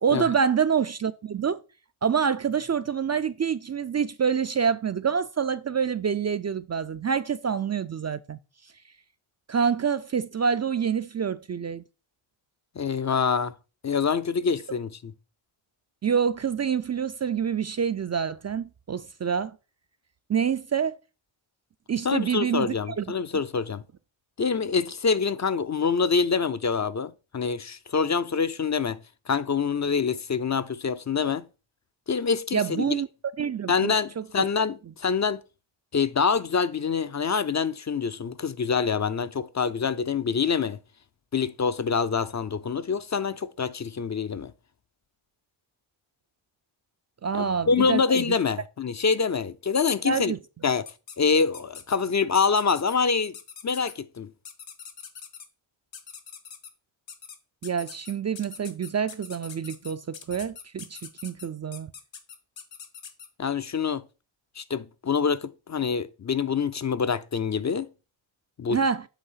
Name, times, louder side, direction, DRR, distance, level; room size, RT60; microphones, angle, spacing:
voice 1, 0.0-1.6 2.0-8.4 9.5-11.8 16.0-19.6 20.3-21.0 21.9-23.1 32.5-33.1 33.4-34.5 47.2-48.3 50.0-50.4 57.6-61.9 68.7-69.0, right 7 dB, 35° right, 0.4 m, -27 dB
voice 2, 12.8-13.5 13.8-15.1 22.0-23.8 24.4-29.0 29.3-31.4 32.1-33.0 33.7-35.4 35.9-40.8 41.3-44.5 47.3-50.3 50.6-50.9 51.2-53.3 53.6-54.3 63.4-64.0 64.6-67.9 68.6-68.8, left 5 dB, 35° left, 0.5 m, -26 dB
sound 1, 50.9-51.2 51.5-52.0 52.4-53.0 53.3-53.9 54.5-55.5 55.9-56.7 57.1-57.4 57.6-63.3, left 7 dB, 60° left, 1.2 m, -43 dB
8.1 x 3.1 x 5.6 m
cardioid pair, 60°, 49 cm